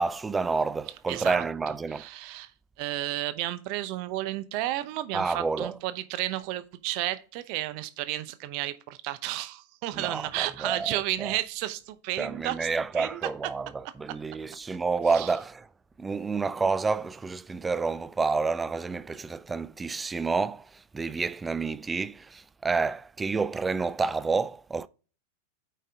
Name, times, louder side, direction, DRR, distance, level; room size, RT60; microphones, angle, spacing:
voice 1, 0.0-2.1 5.1-5.7 9.9-11.3 12.2-13.7 14.0-15.6 16.0-20.6 20.9-24.9, right 4 dB, 15° right, 0.4 m, -29 dB
voice 2, 1.1-2.5 2.8-12.7 12.9-13.2 14.1-14.2 15.1-15.3, right 15 dB, 45° right, 0.7 m, -32 dB
8.5 x 5.2 x 3.6 m
figure-of-eight pair, 90°, 0 cm